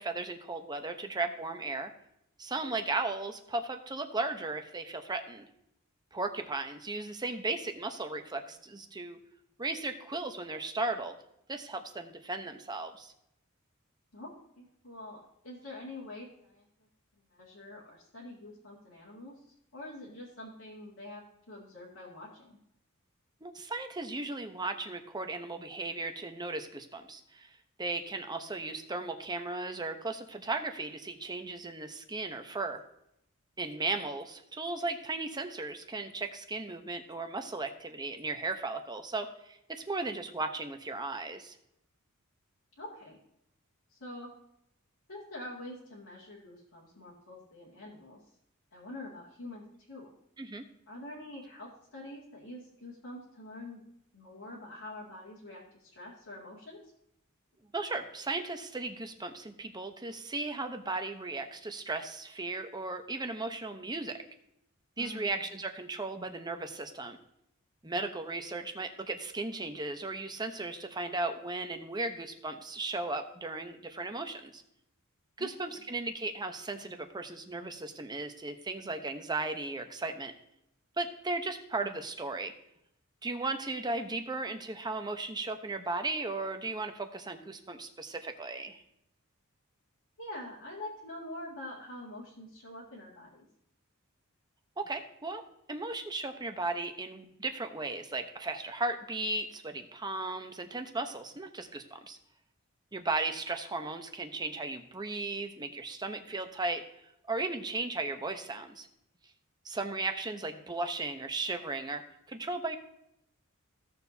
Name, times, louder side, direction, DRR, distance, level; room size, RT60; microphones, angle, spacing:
voice 1, 0.0-1.9 2.4-5.5 6.1-9.2 9.6-11.2 11.5-13.1 23.4-32.8 33.6-41.6 50.4-50.7 57.7-64.2 65.0-67.2 67.8-74.6 75.4-80.3 81.0-82.5 83.2-88.8 94.8-95.4 95.7-102.2 102.9-106.8 107.3-108.9 109.6-112.8, right 3 dB, 20° right, 6 dB, 0.9 m, -36 dB
voice 2, 14.6-16.7 17.3-19.4 19.7-22.6 42.8-43.2 43.9-44.3 45.1-48.2 48.7-50.1 50.9-53.8 54.1-56.8 65.0-65.4 75.4-75.5 90.2-93.5, left 1 dB, 85° left, -7 dB, 2.3 m, -45 dB
15.5 x 6.9 x 2.8 m, 0.77 s
head